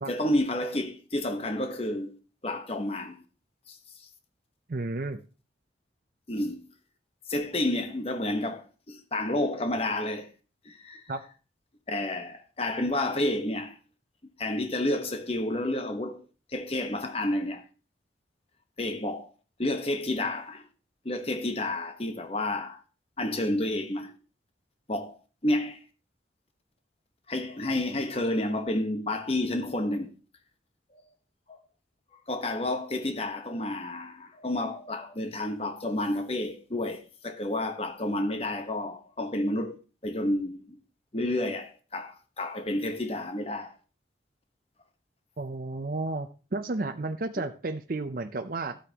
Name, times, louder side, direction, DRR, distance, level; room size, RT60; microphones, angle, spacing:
voice 1, 0.1-2.1 2.4-3.2 3.7-3.8 6.3-6.6 7.3-10.3 10.6-11.0 11.9-13.7 14.4-16.2 16.5-17.6 18.8-19.3 19.6-20.6 21.0-22.8 23.2-24.1 24.9-25.2 25.4-25.8 27.3-30.1 31.5-31.6 32.3-39.7 40.0-40.8 41.1-43.7 47.4-47.5, left 1 dB, 35° left, 1.1 m, -30 dB
voice 2, 4.7-5.2 11.1-11.2 45.4-48.8, right 2 dB, 50° right, 0.6 m, -32 dB
13.0 x 8.5 x 2.9 m
head